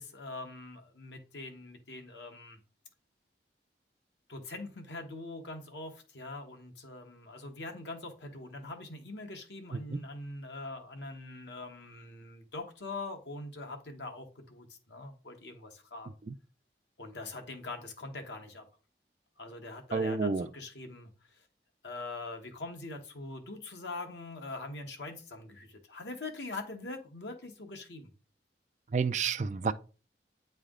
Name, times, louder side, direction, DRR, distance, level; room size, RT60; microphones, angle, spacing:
voice 1, 0.0-2.6 4.3-16.1 17.0-18.7 19.4-21.4 21.8-28.1, left 2 dB, 85° left, 1.2 m, -43 dB
voice 2, 19.9-20.5 28.9-29.7, right 4 dB, 40° right, 0.4 m, -30 dB
8.9 x 3.3 x 3.7 m
head